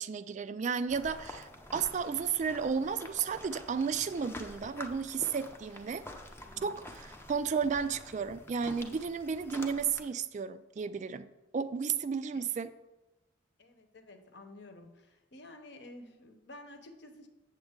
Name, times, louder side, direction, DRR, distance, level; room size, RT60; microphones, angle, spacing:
voice 1, 0.0-6.0 6.6-11.3 11.5-12.7, right 6 dB, 35° right, 13 dB, 0.3 m, -33 dB
sound 1, 0.9-10.1, left 1 dB, 10° left, 0.6 m, -48 dB
voice 2, 13.6-14.9 15.3-17.3, left 1 dB, 60° left, 6 dB, 0.9 m, -51 dB
8.0 x 7.2 x 3.7 m, 1.1 s
head